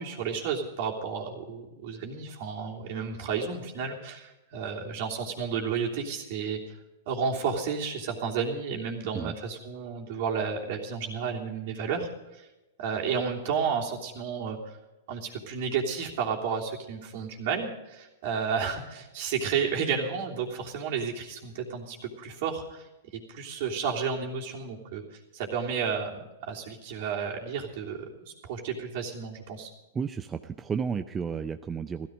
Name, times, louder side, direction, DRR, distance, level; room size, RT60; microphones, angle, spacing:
voice 1, 0.0-6.6 7.1-12.5 12.8-14.8 15.1-22.9 23.3-29.7, right 6 dB, 55° right, 0 dB, 3.1 m, -32 dB
voice 2, 29.9-32.1, right 6 dB, 20° right, 8 dB, 0.6 m, -32 dB
15.5 x 14.0 x 5.2 m, 1.0 s
hypercardioid pair, 115°, 0 cm